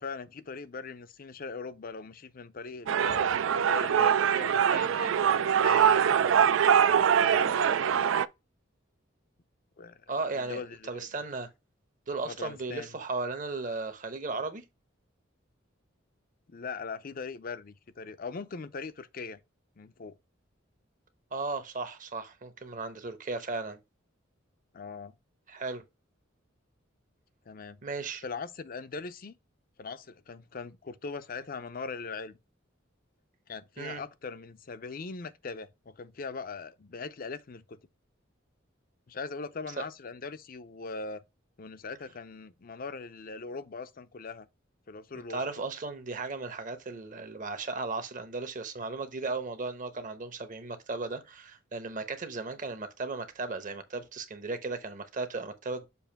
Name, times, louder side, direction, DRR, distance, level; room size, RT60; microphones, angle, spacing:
voice 1, 0.0-6.4 6.9-8.1 9.8-10.0 10.4-11.1 12.2-12.9 16.5-19.4 19.8-20.2 24.7-25.1 27.5-27.8 28.2-29.4 29.8-32.4 33.5-37.8 39.1-41.2 41.6-44.5 44.9-45.4, left 4 dB, 45° left, 0.5 m, -40 dB
sound 1, 2.9-8.3, right 8 dB, 75° right, 0.4 m, -23 dB
voice 2, 10.1-11.5 12.1-14.6 21.3-23.8 25.5-25.8 27.8-28.2 33.8-34.0 39.8-39.9 45.3-55.9, right 3 dB, 40° right, 0.9 m, -36 dB
7.0 x 2.6 x 5.7 m
head